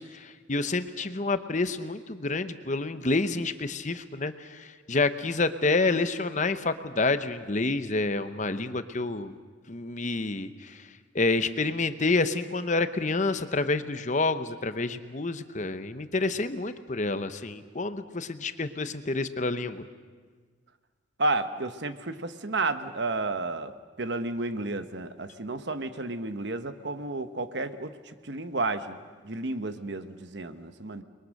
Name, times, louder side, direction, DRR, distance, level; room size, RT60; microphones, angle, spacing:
voice 1, 0.0-9.4 9.7-10.9 11.1-19.8, left 3 dB, 40° left, 11 dB, 0.9 m, -28 dB
voice 2, 21.2-23.7 24.0-29.0 29.2-31.0, right 2 dB, 60° right, 10 dB, 1.2 m, -31 dB
29.5 x 22.0 x 6.6 m, 1.5 s
head